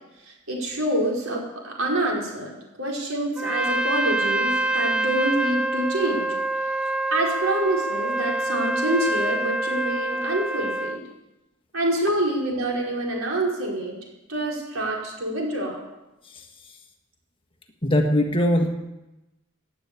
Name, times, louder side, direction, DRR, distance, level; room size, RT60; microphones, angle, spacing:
voice 1, 0.3-6.3 7.1-11.0 11.7-14.0 14.3-15.8, right 1 dB, 75° right, -1 dB, 4.9 m, -26 dB
Trumpet, 3.4-11.0, right 2 dB, 5° right, 0.6 m, -26 dB
voice 2, 17.8-18.7, left 1 dB, 25° left, 4 dB, 1.6 m, -21 dB
17.5 x 9.5 x 8.6 m, 1.0 s
head